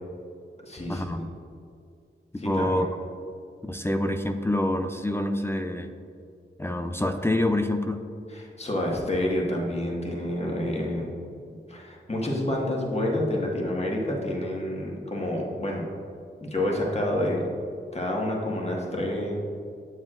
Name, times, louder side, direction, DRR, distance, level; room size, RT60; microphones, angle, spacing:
voice 1, 0.6-1.3 2.4-2.8 8.3-11.1 11.7-15.9 16.4-17.5 17.9-19.4, left 1 dB, 30° left, -2 dB, 1.6 m, -28 dB
voice 2, 2.4-2.9 3.6-5.9 6.6-8.0, left 1 dB, 10° left, 7 dB, 0.4 m, -26 dB
7.3 x 7.1 x 2.5 m, 2.4 s
cardioid pair, 45°, 21 cm